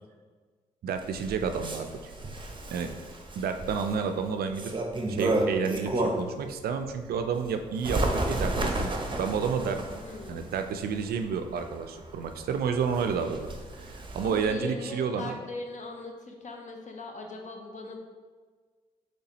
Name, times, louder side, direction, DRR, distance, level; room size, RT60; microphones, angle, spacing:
voice 1, 0.8-2.1 2.7-2.9 3.4-4.7 5.1-8.9 9.2-9.8 10.3-13.5 13.9-15.4, right 6 dB, 70° right, 7 dB, 0.4 m, -30 dB
Bird, 1.0-6.4 6.8-14.5, right 2 dB, 30° right, 0.7 m, -32 dB
voice 2, 10.0-10.5 14.2-18.0, left 2 dB, 45° left, 2 dB, 0.7 m, -40 dB
4.0 x 3.2 x 2.9 m, 1.5 s
hypercardioid pair, 40°, 17 cm